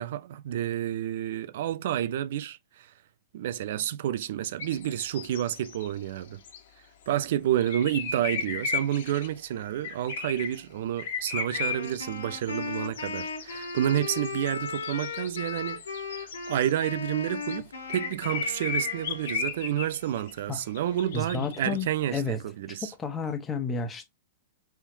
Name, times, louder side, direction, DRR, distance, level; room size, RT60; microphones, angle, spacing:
voice 1, 0.0-2.9 3.3-6.4 7.1-15.8 16.2-22.9, right 11 dB, 60° right, 0.5 m, -30 dB
sound 1, 4.6-5.9 6.2-6.6 7.6-9.3 9.8-10.6 11.0-17.6 17.9-21.8, left 5 dB, 65° left, 1.5 m, -35 dB
Wind instrument woodwind instrument, 11.5-19.7, left 4 dB, 80° left, 1.9 m, -37 dB
voice 2, 21.1-22.4 22.8-24.1, left 4 dB, 20° left, 1.2 m, -31 dB
4.3 x 3.6 x 2.7 m
figure-of-eight pair, 105°, 0 cm